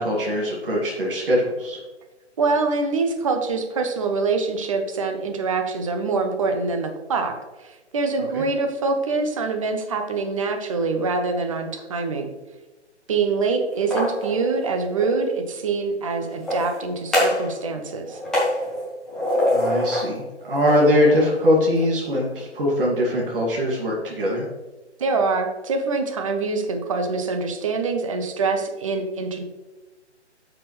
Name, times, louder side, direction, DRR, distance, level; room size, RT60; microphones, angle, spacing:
voice 1, 0.0-1.8 8.3-8.4 19.5-24.5, left 1 dB, 50° right, -3 dB, 2.4 m, -21 dB
voice 2, 2.4-12.3 13.1-18.2 25.0-29.4, right 4 dB, 30° right, 5 dB, 0.9 m, -25 dB
sound 1, 13.7-15.2 16.3-17.5 17.8-20.1 20.5-21.9, left 1 dB, ahead, 0.8 m, -25 dB
9.4 x 6.0 x 3.3 m, 1.1 s
figure-of-eight pair, 145°, 35 cm